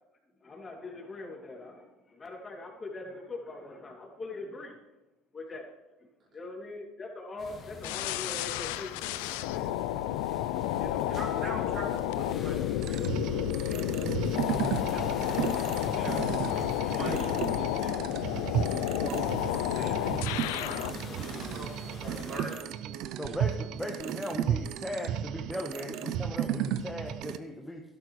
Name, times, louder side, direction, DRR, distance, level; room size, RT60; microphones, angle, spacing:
voice 1, 0.4-4.8 5.3-5.7 6.0-6.1 6.3-9.8 10.8-11.8, left 2 dB, 30° left, 0 dB, 2.8 m, -42 dB
sound 1, 7.4-22.6, left 4 dB, 45° left, 2.2 m, -45 dB
sound 2, 7.8-21.0, left 13 dB, 85° left, 0.4 m, -31 dB
voice 2, 11.1-13.8 14.3-16.2 16.8-23.4, right 2 dB, 50° right, -2 dB, 3.9 m, -44 dB
sound 3, 12.8-27.4, right 10 dB, 65° right, 0.5 m, -34 dB
voice 3, 23.1-27.8, left 1 dB, 5° left, 0 dB, 1.3 m, -38 dB
12.5 x 12.0 x 3.3 m, 1.0 s
supercardioid pair, 90°, 0 cm